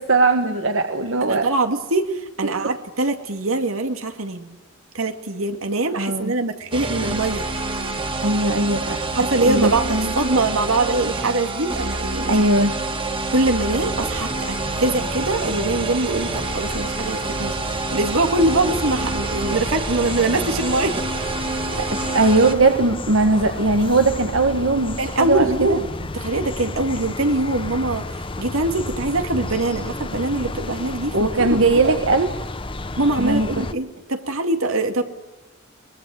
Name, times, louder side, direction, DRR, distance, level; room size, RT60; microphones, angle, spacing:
voice 1, 0.0-1.5 2.4-2.5 6.0-6.3 8.2-9.0 9.4-10.1 12.3-12.7 21.8-21.9 22.1-25.8 31.1-32.3 33.2-33.6, right 2 dB, 65° right, 6 dB, 1.5 m, -19 dB
voice 2, 1.2-2.1 2.4-4.5 4.9-7.5 9.1-12.4 13.3-21.0 22.7-22.8 25.0-28.0 28.4-32.0 33.0-35.0, right 2 dB, 85° right, 6 dB, 2.4 m, -23 dB
sound 1, 6.7-22.5, right 2 dB, 25° right, 2.2 m, -27 dB
sound 2, 14.0-33.7, left 2 dB, 25° left, 1.0 m, -32 dB
23.0 x 21.5 x 8.0 m, 1.1 s
head